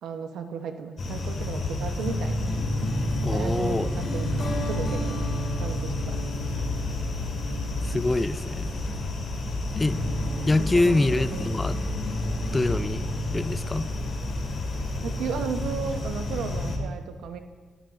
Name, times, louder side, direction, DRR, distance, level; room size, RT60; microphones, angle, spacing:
voice 1, 0.0-2.5 3.3-5.2 5.6-6.2 6.5-6.8 10.7-11.5 15.0-17.4, right 6 dB, 85° right, 7 dB, 0.9 m, -35 dB
sound 1, 1.0-16.8, left 1 dB, 55° left, 2.2 m, -29 dB
voice 2, 3.2-3.9 7.8-8.7 9.8-10.0 10.5-11.8 12.5-13.9, left 2 dB, 20° left, 15 dB, 0.3 m, -25 dB
19.5 x 10.0 x 2.5 m, 1.3 s
cardioid pair, 100°, 0 cm